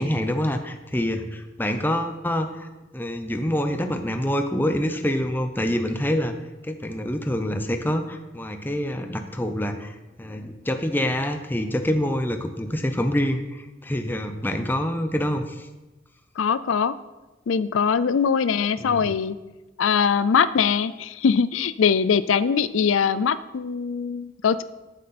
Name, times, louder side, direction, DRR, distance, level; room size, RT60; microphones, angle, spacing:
voice 1, 0.0-2.7 2.9-6.3 6.6-15.7 18.8-19.1, equal, 10° left, 6 dB, 0.7 m, -26 dB
voice 2, 16.4-16.9 17.5-19.4 19.8-24.6, left 6 dB, 85° left, 15 dB, 0.4 m, -22 dB
13.0 x 7.4 x 4.3 m, 1.1 s
head